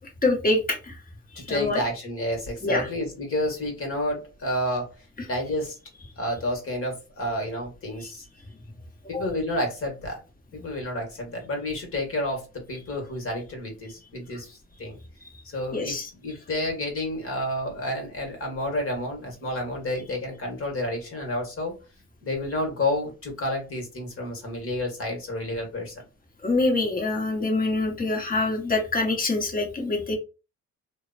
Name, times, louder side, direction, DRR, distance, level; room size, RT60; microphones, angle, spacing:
voice 1, 0.2-1.0 1.5-1.8 2.6-2.9 15.7-16.1 26.4-30.2, left 2 dB, 30° left, 2 dB, 1.1 m, -25 dB
voice 2, 1.3-5.0 5.3-5.8 6.2-8.2 9.1-10.2 10.5-15.0 15.4-21.8 22.2-25.9, left 1 dB, 45° left, 2 dB, 1.3 m, -30 dB
2.8 x 2.1 x 2.6 m, 0.30 s
cardioid pair, 90°, 30 cm